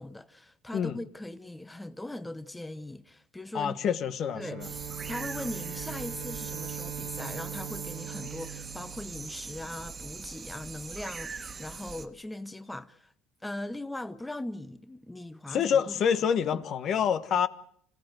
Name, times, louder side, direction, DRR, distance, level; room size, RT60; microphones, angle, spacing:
voice 1, 0.0-3.8 4.4-13.1 13.4-16.2 16.5-16.6, left 1 dB, 10° left, 0.9 m, -40 dB
voice 2, 3.5-4.7 15.5-17.5, left 8 dB, 50° left, 1.2 m, -27 dB
Bowed string instrument, 4.1-9.8, right 11 dB, 60° right, 1.5 m, -42 dB
sound 1, 4.6-12.1, right 5 dB, 30° right, 1.7 m, -41 dB
26.5 x 15.5 x 7.8 m
supercardioid pair, 90°, 0 cm